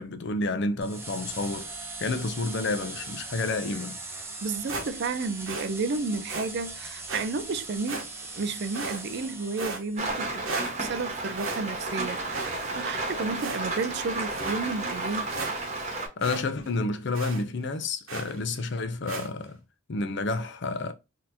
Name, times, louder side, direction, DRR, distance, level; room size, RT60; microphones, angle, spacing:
voice 1, 0.0-1.7 2.0-4.0 16.2-19.6 19.9-20.9, left 3 dB, 55° left, 0.5 m, -30 dB
sound 1, 0.8-10.1, right 2 dB, 10° right, 0.7 m, -40 dB
voice 2, 4.4-8.1 8.3-15.3, right 4 dB, 50° right, 0.4 m, -32 dB
sound 2, 4.7-5.2 5.5-5.7 6.3-6.5 7.1-7.3 7.9-8.3 8.7-9.3 9.6-10.2 10.5-11.0 11.4-12.0 12.3-13.0 13.4-13.9 14.3-14.6 15.0-15.1 15.3-15.9 16.2-16.4 16.7-16.8 17.1-17.4 18.1-18.4 19.1-19.3, right 3 dB, 75° right, 1.0 m, -36 dB
Rain, 10.0-16.1, right 2 dB, 30° right, 1.1 m, -32 dB
4.0 x 2.8 x 2.6 m
head